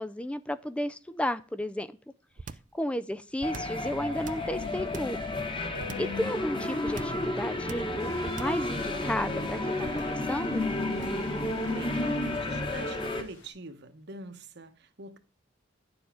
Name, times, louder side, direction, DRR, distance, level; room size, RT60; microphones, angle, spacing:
voice 1, 0.0-1.9 2.7-5.2 6.0-10.6, left 1 dB, 5° left, 0.4 m, -33 dB
sound 1, 2.4-2.8 3.4-3.8 4.2-5.2 5.8-6.2 6.9-7.3 7.7-8.0 8.3-8.7 9.8-10.2 11.0-11.3, right 4 dB, 45° right, 0.6 m, -42 dB
sound 2, 3.4-13.2, left 1 dB, 25° left, 1.4 m, -32 dB
sound 3, 8.0-13.5, left 3 dB, 85° left, 3.9 m, -51 dB
voice 2, 11.7-15.2, right 2 dB, 65° right, 1.1 m, -44 dB
10.5 x 7.1 x 4.9 m
head